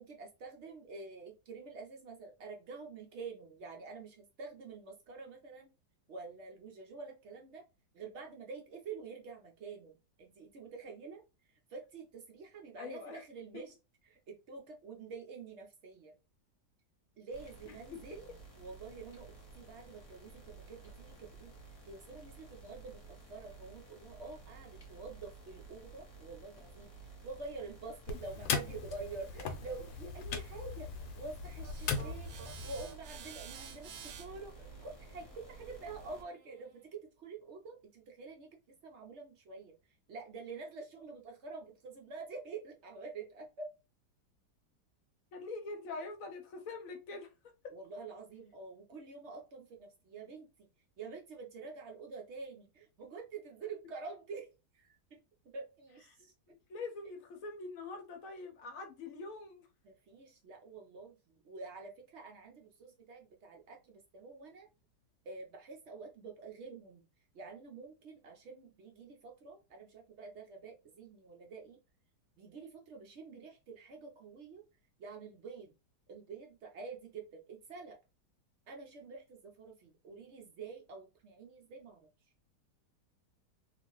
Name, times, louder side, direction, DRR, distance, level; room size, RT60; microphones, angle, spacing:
voice 1, 0.0-5.7 6.1-7.6 7.9-11.2 11.5-13.7 14.1-16.2 17.2-18.3 18.5-21.5 21.9-43.7 47.7-50.7 51.0-54.5 54.7-55.2 55.4-56.3 59.8-64.7 65.2-67.0 67.3-71.8 72.4-74.6 75.0-75.7 76.1-78.0 78.7-82.1, right 4 dB, 65° right, 0.7 m, -48 dB
voice 2, 12.8-13.2 17.9-18.0 45.3-47.3 47.6-47.7 56.5-59.7, left 3 dB, 65° left, 1.0 m, -44 dB
sound 1, 17.3-36.2, right 3 dB, 25° left, 0.8 m, -53 dB
sound 2, 28.1-32.9, left 5 dB, 85° left, 1.2 m, -39 dB
sound 3, 31.6-36.8, right 7 dB, 90° right, 1.3 m, -52 dB
2.9 x 2.5 x 2.9 m
omnidirectional pair, 1.8 m